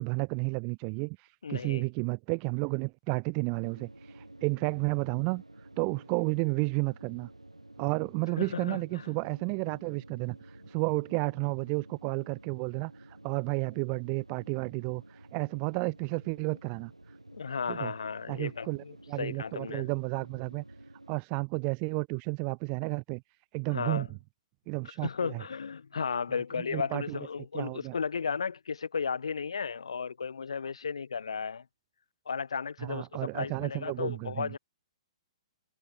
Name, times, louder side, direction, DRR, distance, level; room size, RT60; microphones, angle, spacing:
voice 1, 0.0-5.4 5.8-7.3 7.8-16.9 17.7-17.9 18.3-20.6 21.1-23.2 23.5-24.1 24.7-25.4 26.7-27.2 27.5-27.9 32.8-34.5, right 40 dB or more, 30° right, 0.9 m, -32 dB
voice 2, 1.4-1.8 8.4-9.1 17.3-19.9 23.7-24.1 25.0-31.6 32.3-34.6, left 6 dB, 65° left, 2.6 m, -34 dB
sound 1, 3.6-21.2, right 2 dB, 85° right, 7.5 m, -52 dB
figure-of-eight pair, 120°, 3 cm